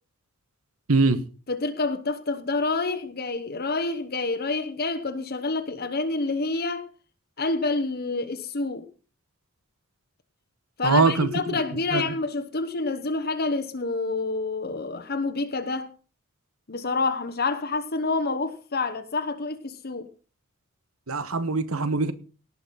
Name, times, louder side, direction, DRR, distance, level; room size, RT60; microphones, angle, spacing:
voice 1, 0.9-1.2 10.8-11.6 11.9-12.1 21.1-22.1, right 3 dB, 75° right, 1.2 m, -23 dB
voice 2, 1.5-6.8 7.4-8.8 10.8-15.9 16.7-20.1, left 3 dB, 45° left, 1.1 m, -28 dB
17.5 x 5.9 x 5.6 m
head